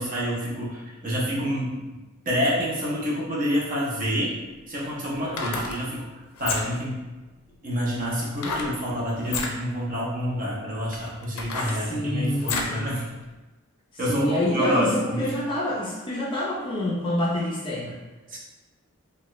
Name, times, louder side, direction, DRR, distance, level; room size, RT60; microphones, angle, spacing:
voice 1, 0.0-1.8 2.3-4.4 4.7-6.1 6.4-7.0 7.6-13.0 14.0-15.3 18.3-18.4, equal, 40° right, -5 dB, 0.7 m, -27 dB
sound 1, 5.2-5.8 6.3-6.9 8.4-8.7 9.2-9.5 10.3-10.4 10.9-12.8 13.2-13.3, left 4 dB, 90° left, 0.4 m, -30 dB
voice 2, 5.2-5.6 11.7-12.9 14.1-18.0, left 1 dB, 25° left, -5 dB, 0.4 m, -27 dB
2.8 x 2.2 x 3.0 m, 1.2 s
head